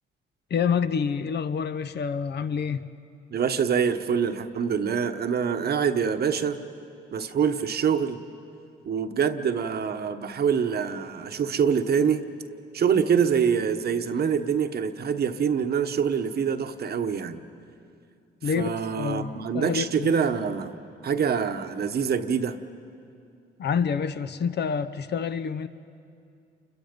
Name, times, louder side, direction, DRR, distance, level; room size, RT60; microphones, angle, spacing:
voice 1, 0.5-2.8 18.4-20.1 23.6-25.7, left 6 dB, 55° left, 11 dB, 0.8 m, -27 dB
voice 2, 3.3-6.6 7.1-8.2 8.8-12.2 12.7-17.4 18.6-20.8 21.0-22.6, right 7 dB, 55° right, 8 dB, 1.1 m, -25 dB
29.0 x 23.0 x 5.3 m, 2.5 s
cardioid pair, 90°, 20 cm